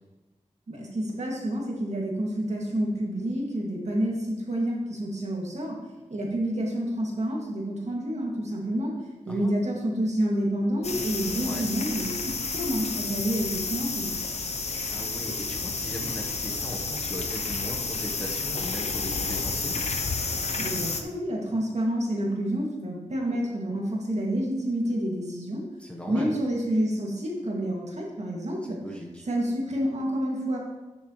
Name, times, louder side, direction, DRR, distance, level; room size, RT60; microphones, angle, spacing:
voice 1, 0.7-5.8 6.1-8.9 9.3-14.1 20.6-25.6 26.1-28.8 29.3-30.6, right 1 dB, 60° right, -2 dB, 2.3 m, -28 dB
sound 1, 10.8-21.0, left 4 dB, 60° left, 0.8 m, -31 dB
voice 2, 14.9-19.8 25.8-26.3 28.6-29.2, equal, 10° left, -1 dB, 1.2 m, -38 dB
12.0 x 7.0 x 3.2 m, 1.1 s
wide cardioid pair, 95°, 13 cm